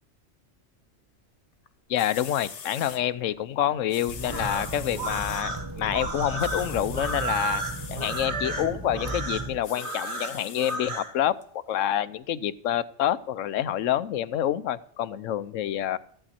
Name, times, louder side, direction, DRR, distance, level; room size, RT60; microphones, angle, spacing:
sound 1, 1.7-1.8 2.0-3.0 3.9-5.4 6.4-8.3 9.6-10.8 11.4-11.5, left 7 dB, 65° left, 1.3 m, -42 dB
voice 1, 1.9-7.6 7.9-16.0, left 11 dB, 85° left, 1.0 m, -27 dB
sound 2, 4.1-9.6, right 2 dB, 20° right, 0.9 m, -36 dB
sound 3, 4.2-11.1, right 2 dB, 60° right, 2.7 m, -33 dB
14.0 x 9.0 x 4.2 m
omnidirectional pair, 1.3 m